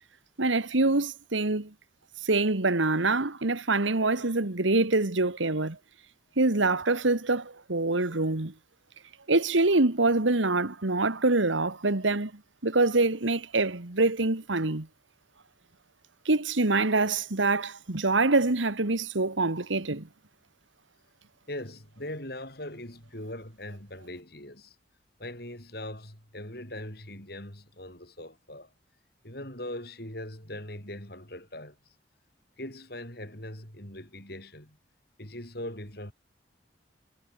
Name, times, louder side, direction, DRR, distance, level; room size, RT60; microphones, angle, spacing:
voice 1, 0.4-1.7 2.2-5.8 6.4-8.5 9.3-12.3 12.6-14.9 16.3-20.1, right 2 dB, 85° right, 1.7 m, -25 dB
voice 2, 21.5-24.8 25.2-28.7 29.2-31.8 32.6-34.8 35.2-36.1, left 1 dB, 55° left, 7.9 m, -41 dB
head